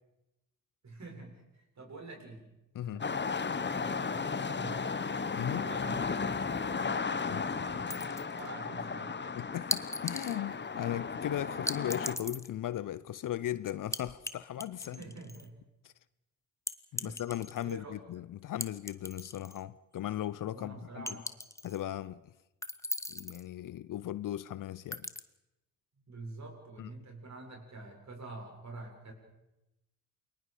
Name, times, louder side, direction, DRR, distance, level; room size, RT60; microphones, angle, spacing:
voice 1, 0.8-2.5 2.8-5.1 5.6-9.4 14.8-15.6 16.9-17.2 17.6-18.0 20.5-21.4 26.1-29.1, right 2 dB, 40° right, 7.3 m, -47 dB
voice 2, 2.7-3.1 5.3-5.7 7.3-7.4 9.4-15.0 15.8-15.9 16.9-21.2 21.6-22.2 23.1-25.1 26.8-26.9, left 12 dB, 50° left, 0.8 m, -37 dB
sound 1, 3.0-12.2, left 5 dB, 25° left, 1.3 m, -35 dB
sound 2, 7.9-8.5 9.7-10.4 11.7-12.5 13.9-14.3 14.6-15.5 16.7-17.7 18.6-19.6 20.0-20.1 21.1-21.8 22.6-23.4 24.9-25.2, left 1 dB, 5° left, 1.3 m, -38 dB
29.0 x 21.5 x 5.1 m
hypercardioid pair, 50°, 40 cm